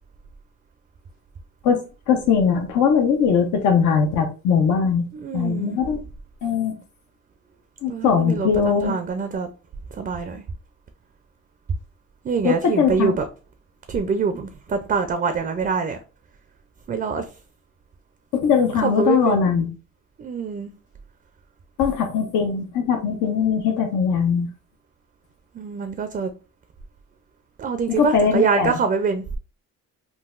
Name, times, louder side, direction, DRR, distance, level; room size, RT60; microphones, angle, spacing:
voice 1, 2.1-5.1 5.3-6.0 6.4-6.7 7.8-9.0 12.4-13.1 18.4-19.7 21.8-24.5 28.0-28.7, left 6 dB, 80° left, 0.6 m, -20 dB
voice 2, 5.1-5.8 7.8-9.5 9.9-10.4 12.2-13.3 13.9-16.0 16.9-17.3 18.8-19.5 20.2-20.7 25.5-26.3 27.6-29.2, right 5 dB, 30° right, 0.4 m, -24 dB
3.8 x 2.3 x 2.4 m
cardioid pair, 90°, 30 cm